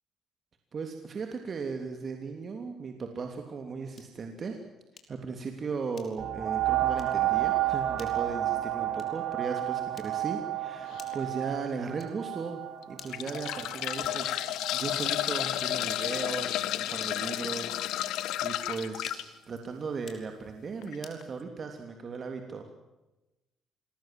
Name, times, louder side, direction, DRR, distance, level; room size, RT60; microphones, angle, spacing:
voice 1, 0.7-4.6 5.1-12.6 12.9-14.4 14.7-17.8 18.4-22.7, right 5 dB, 45° right, 5 dB, 3.1 m, -37 dB
sound 1, 3.9-4.3 5.0-5.3 5.9-6.4 6.9-7.2 7.9-8.2 8.9-9.3 9.9-10.4 11.0-11.3 12.0-12.3 12.9-13.4 14.0-14.3 14.9-15.3 16.0-16.4 17.0-17.4 18.0-18.3 19.0-19.4 20.0-20.3 21.0-21.3, left 5 dB, 45° left, 5.3 m, -52 dB
sound 2, 6.2-15.4 16.1-16.2, right 14 dB, 60° right, 1.4 m, -31 dB
sound 3, 10.9-11.1 11.8-11.9 12.8-19.2 20.8-20.9 21.2-21.3, left 13 dB, 85° left, 1.5 m, -32 dB
26.5 x 21.0 x 7.8 m, 1.0 s
cardioid pair, 90°, 0 cm